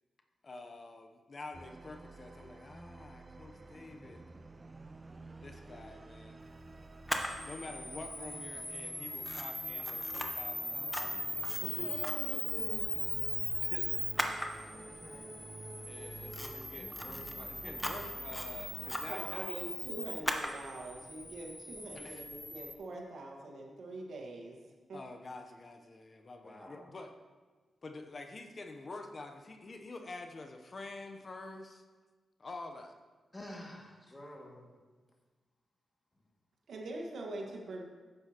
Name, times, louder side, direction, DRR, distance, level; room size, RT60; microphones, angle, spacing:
voice 1, 0.4-4.3 5.4-6.4 7.4-11.5 13.6-13.9 15.8-19.6 21.9-22.3 24.9-27.1 27.8-31.8 32.4-32.9, left 3 dB, 45° left, 5 dB, 0.7 m, -48 dB
sound 1, 1.5-19.2, right 3 dB, 35° right, 0.5 m, -50 dB
Camera, 7.1-22.7, left 1 dB, 10° left, 0.9 m, -38 dB
voice 2, 11.6-13.1 14.7-15.4 26.4-26.8 33.3-34.7, left 1 dB, 25° left, -1 dB, 2.0 m, -47 dB
voice 3, 19.1-24.6 24.9-25.0 36.7-37.8, right 2 dB, 75° right, 0 dB, 1.4 m, -43 dB
10.5 x 7.8 x 2.9 m, 1.4 s
cardioid pair, 60°, 0 cm